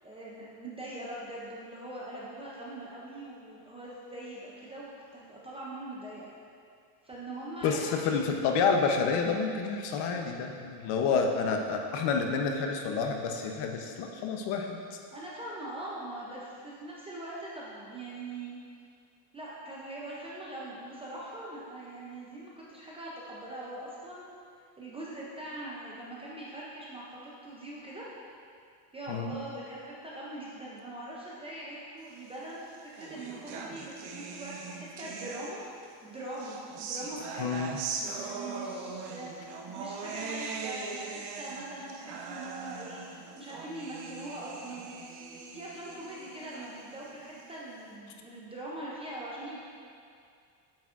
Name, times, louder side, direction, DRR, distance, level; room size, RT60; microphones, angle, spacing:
voice 1, 0.0-6.3 7.0-8.3 15.1-18.6 19.3-24.3 24.8-28.1 28.9-37.6 38.1-39.4 39.7-44.9 45.5-49.6, right 1 dB, 15° right, -6 dB, 0.4 m, -42 dB
voice 2, 7.6-14.8 29.1-29.3 37.4-37.8, left 5 dB, 55° left, 3 dB, 0.8 m, -29 dB
sound 1, 32.4-35.9 36.3-47.8, right 4 dB, 55° right, 0.8 m, -41 dB
8.7 x 5.9 x 2.4 m, 2.3 s
cardioid pair, 155°, 49 cm